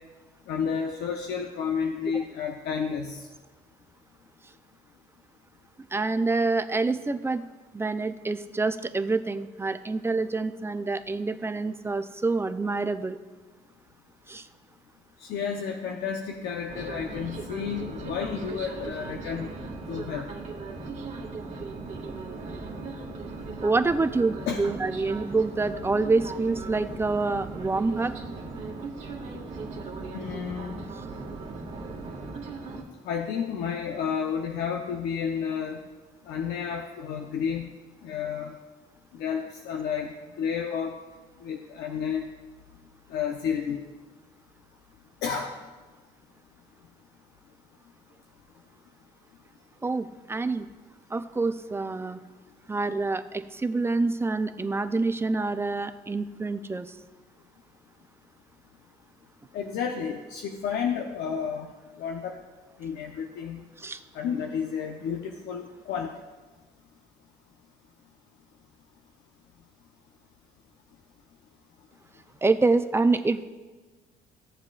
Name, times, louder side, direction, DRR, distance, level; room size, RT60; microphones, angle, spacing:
voice 1, 0.5-3.2 15.2-19.5 19.9-20.2 24.5-24.7 30.1-30.7 33.0-35.8 36.3-37.7 38.0-38.6 39.1-40.1 40.4-40.9 41.4-42.2 43.1-43.8 45.2-45.5 59.5-61.7 62.0-62.4 62.8-63.6 64.1-66.1, left 7 dB, 75° left, 3 dB, 0.8 m, -31 dB
voice 2, 5.9-7.4 7.7-13.2 14.3-14.5 23.6-28.1 49.8-50.7 51.1-52.2 52.7-56.9 63.8-64.0 72.4-73.4, right 3 dB, 15° right, 10 dB, 0.4 m, -27 dB
sound 1, 16.7-32.8, right 3 dB, 40° right, 1.7 m, -38 dB
15.5 x 7.3 x 2.4 m, 1.3 s
cardioid pair, 110°, 17 cm